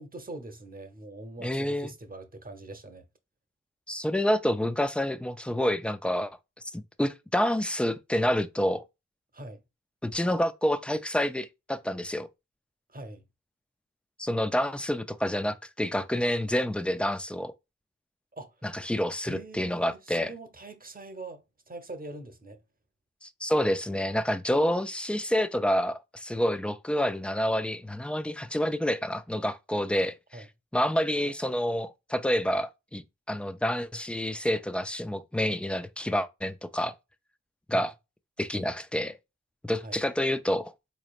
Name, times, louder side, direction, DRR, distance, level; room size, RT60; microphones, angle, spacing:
voice 1, 0.0-3.1 9.3-9.6 12.9-13.2 18.3-18.6 19.2-22.6 30.3-30.5 37.7-37.9 39.8-40.0, right 2 dB, 30° right, 0.9 m, -43 dB
voice 2, 1.4-1.9 3.9-6.4 6.7-8.8 10.0-12.3 14.2-17.5 18.6-20.3 23.2-30.4 30.7-36.9 37.7-37.9 38.4-39.2 39.6-40.7, equal, 5° left, 0.4 m, -28 dB
4.0 x 3.2 x 2.4 m
cardioid pair, 45°, 30 cm